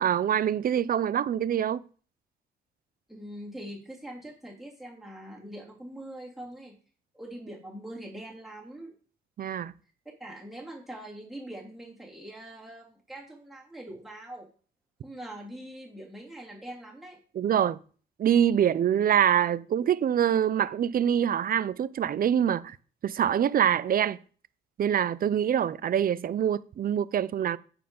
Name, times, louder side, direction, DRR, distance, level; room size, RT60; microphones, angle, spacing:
voice 1, 0.0-1.8 9.4-9.7 17.3-17.8 18.2-22.8 23.0-24.2 24.8-27.6, right 9 dB, 45° right, 0.5 m, -25 dB
voice 2, 3.1-6.7 7.1-8.9 10.2-14.5 15.0-17.2, right 1 dB, ahead, 2.9 m, -43 dB
9.3 x 4.5 x 5.4 m
cardioid pair, 90°, 20 cm